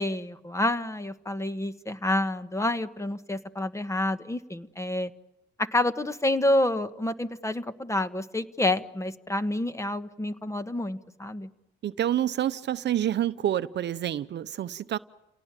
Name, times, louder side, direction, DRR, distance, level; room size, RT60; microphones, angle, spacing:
voice 1, 0.0-5.1 5.6-11.5, left 1 dB, 15° left, 1.4 m, -28 dB
voice 2, 11.8-15.0, right 11 dB, 60° right, 0.8 m, -28 dB
29.5 x 18.0 x 9.1 m
cardioid pair, 90°, 20 cm